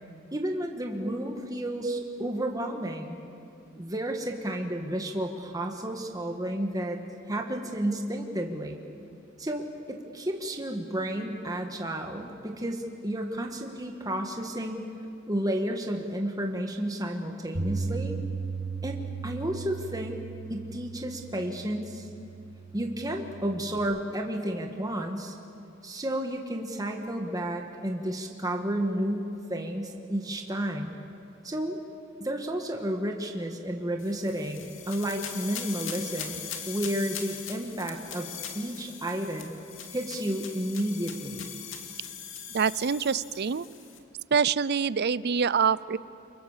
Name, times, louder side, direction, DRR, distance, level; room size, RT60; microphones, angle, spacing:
voice 1, 0.3-3.2 3.7-7.0 7.3-8.8 9.4-14.9 15.3-18.2 18.8-20.2 20.5-22.1 22.7-25.3 25.8-31.0 31.4-31.8 32.2-39.5 39.9-41.5, right 1 dB, 20° right, 2 dB, 1.7 m, -32 dB
Bass guitar, 17.5-23.8, right 4 dB, 85° right, 5.4 m, -37 dB
sound 1, 34.0-44.0, left 8 dB, 70° left, 2.5 m, -41 dB
voice 2, 42.5-43.7 44.3-46.0, right 6 dB, 55° right, 18 dB, 0.6 m, -25 dB
29.0 x 24.5 x 7.4 m, 2.6 s
head